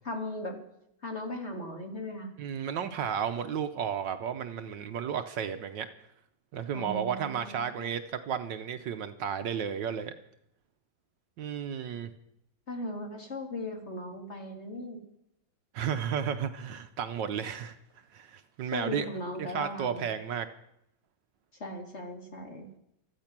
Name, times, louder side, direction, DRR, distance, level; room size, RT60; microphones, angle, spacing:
voice 1, 0.1-0.6 1.0-2.3 6.7-7.8 12.7-15.0 18.7-20.1 21.6-22.7, left 1 dB, 35° left, 3 dB, 2.2 m, -38 dB
voice 2, 2.4-5.9 6.5-10.1 11.4-12.1 15.7-17.8 18.1-19.1 19.4-20.5, right 8 dB, 65° right, 9 dB, 1.4 m, -33 dB
15.5 x 13.5 x 6.0 m, 0.79 s
omnidirectional pair, 2.2 m